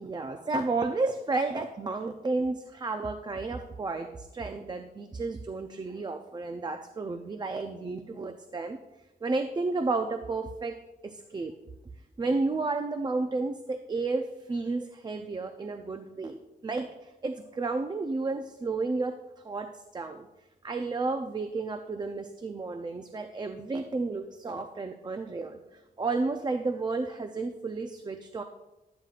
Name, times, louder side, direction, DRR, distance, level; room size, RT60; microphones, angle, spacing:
voice 1, 0.0-8.8 9.2-10.8 11.0-11.6 12.2-19.2 19.4-20.3 20.6-28.4, right 3 dB, 25° right, 7 dB, 0.4 m, -32 dB
12.0 x 9.0 x 2.4 m, 1.0 s
wide cardioid pair, 155°, 16 cm